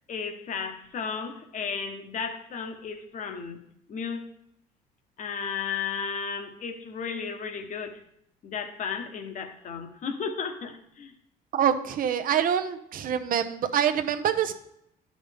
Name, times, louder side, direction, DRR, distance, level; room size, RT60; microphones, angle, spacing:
voice 1, 0.1-3.6 3.9-4.3 5.2-8.0 8.4-11.1, left 6 dB, 45° left, 6 dB, 1.0 m, -34 dB
voice 2, 11.5-14.5, right 9 dB, 55° right, 9 dB, 0.7 m, -25 dB
11.5 x 5.3 x 3.4 m, 0.76 s
cardioid pair, 110°, 17 cm